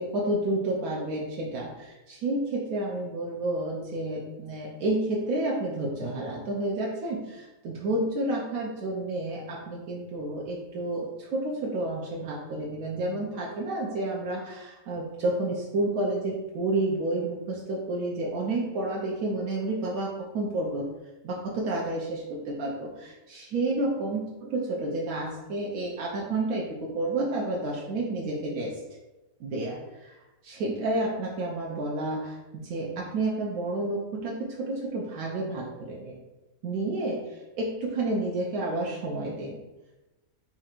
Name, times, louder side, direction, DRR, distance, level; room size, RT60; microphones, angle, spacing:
voice 1, 0.0-20.9 21.2-28.7 29.4-30.2 30.4-36.2 36.6-39.6, right 2 dB, 85° right, -3 dB, 1.1 m, -30 dB
4.3 x 2.4 x 4.3 m, 1.1 s
omnidirectional pair, 1.4 m